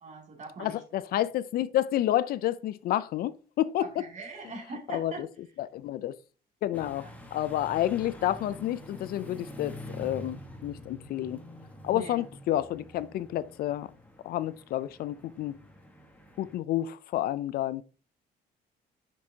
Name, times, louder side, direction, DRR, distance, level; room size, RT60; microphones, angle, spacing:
voice 1, 0.0-0.8 3.8-5.3 7.0-7.3 11.9-12.2, right 3 dB, 45° right, 2.6 m, -42 dB
voice 2, 0.6-3.9 4.9-5.3 5.6-6.2 6.6-7.0 7.3-11.4 11.8-13.9 14.2-15.6 16.4-17.8, left 13 dB, 65° left, 0.4 m, -30 dB
sound 1, 6.7-16.6, left 1 dB, 10° left, 1.2 m, -46 dB
6.1 x 6.0 x 2.8 m
cardioid pair, 110°, 17 cm